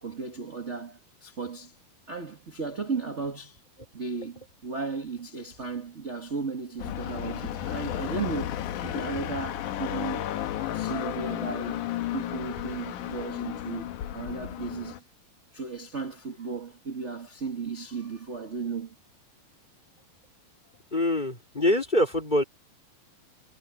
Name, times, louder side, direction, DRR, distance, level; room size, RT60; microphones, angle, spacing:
voice 1, 0.0-1.7 2.1-3.6 3.9-10.3 10.7-11.8 12.1-15.0 15.5-18.9, right 4 dB, 25° right, 1.7 m, -35 dB
sound 1, 6.8-15.0, left 12 dB, 70° left, 2.5 m, -33 dB
voice 2, 20.9-22.4, left 1 dB, 15° left, 3.8 m, -24 dB
omnidirectional pair, 4.0 m